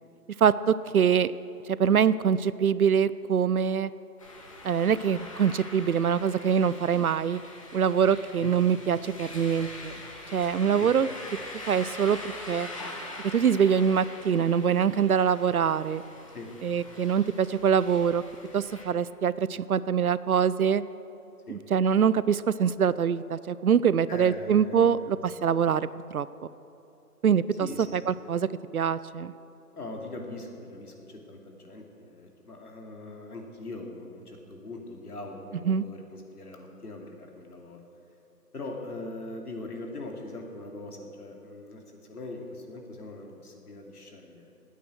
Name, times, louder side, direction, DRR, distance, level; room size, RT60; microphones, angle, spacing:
voice 1, 0.4-1.3 1.8-3.9 4.6-7.4 7.7-10.0 10.3-11.1 11.7-12.2 12.5-12.7 13.3-16.0 16.6-18.2 18.5-20.8 21.5-26.3 27.2-27.7 27.9-28.5 28.7-29.3 35.7-35.8, right 7 dB, 65° right, 17 dB, 0.5 m, -24 dB
sound 1, 4.2-18.8, left 2 dB, 20° left, 1.2 m, -43 dB
voice 2, 24.1-25.4 27.6-28.2 29.7-37.8 38.5-44.4, left 2 dB, 70° left, 1 dB, 2.8 m, -41 dB
18.0 x 9.3 x 6.4 m, 2.9 s
figure-of-eight pair, 165°, 47 cm